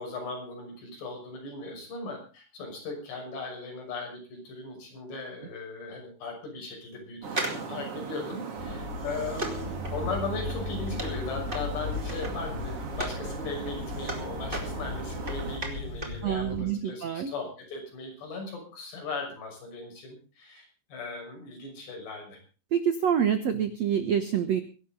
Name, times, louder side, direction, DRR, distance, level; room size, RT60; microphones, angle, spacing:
voice 1, 0.0-22.4, left 3 dB, 75° left, 1 dB, 8.4 m, -38 dB
sound 1, 7.2-15.6, right 5 dB, 40° right, 2.4 m, -39 dB
sound 2, 7.3-13.2 13.6-16.3 16.5-16.6, right 2 dB, 15° right, 2.1 m, -38 dB
sound 3, 8.6-16.6, left 3 dB, 35° left, 7.4 m, -37 dB
voice 2, 16.2-17.3 22.7-24.6, right 8 dB, 80° right, 9 dB, 1.5 m, -26 dB
23.0 x 12.0 x 3.8 m, 0.35 s
omnidirectional pair, 4.9 m